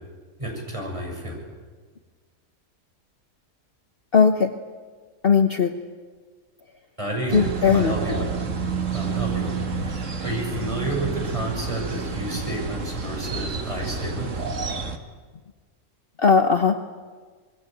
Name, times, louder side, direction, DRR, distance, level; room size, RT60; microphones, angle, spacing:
voice 1, 0.4-1.4 7.0-8.5 8.9-14.5, right 1 dB, 20° right, 0 dB, 6.9 m, -30 dB
voice 2, 4.1-4.5 5.2-5.7 7.3-7.9 16.2-16.8, left 5 dB, 45° left, 6 dB, 1.3 m, -18 dB
sound 1, 7.3-15.0, right 5 dB, 60° right, 2.0 m, -29 dB
26.0 x 21.5 x 9.2 m, 1.5 s
omnidirectional pair, 1.5 m